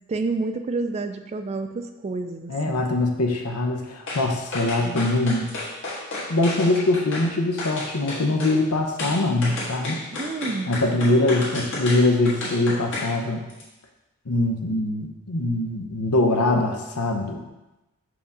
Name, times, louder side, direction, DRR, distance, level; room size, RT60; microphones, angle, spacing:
voice 1, 0.1-2.8 4.8-5.2 10.1-10.8, right 3 dB, 30° right, 8 dB, 0.3 m, -29 dB
voice 2, 2.5-5.5 6.3-10.0 10.7-13.4 14.3-17.4, left 2 dB, 85° left, 3 dB, 0.8 m, -23 dB
sound 1, 4.1-4.3 4.5-7.3 7.6-8.6 9.0-13.1 13.5-13.6, left 2 dB, 60° left, 1.5 m, -32 dB
4.8 x 3.6 x 5.3 m, 1.0 s
head